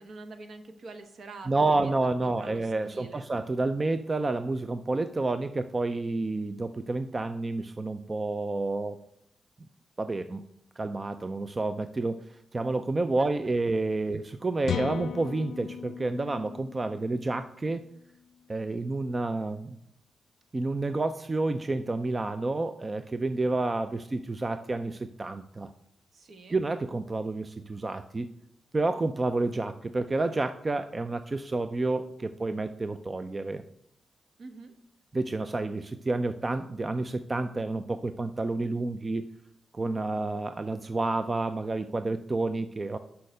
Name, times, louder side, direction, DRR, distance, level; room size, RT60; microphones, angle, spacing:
voice 1, 0.0-1.9 2.2-3.3 13.2-13.3 26.1-26.6 34.4-34.7, right 3 dB, 65° right, 7 dB, 1.1 m, -46 dB
voice 2, 1.5-9.0 10.0-10.4 10.8-12.2 12.5-17.8 18.5-19.8 20.5-25.7 26.5-28.3 28.7-33.6 35.1-39.3 39.7-43.0, right 2 dB, 30° right, 10 dB, 0.4 m, -29 dB
sound 1, 14.6-18.4, left 8 dB, 85° left, 0.3 m, -37 dB
6.4 x 5.7 x 6.4 m, 0.75 s
cardioid pair, 85°, 0 cm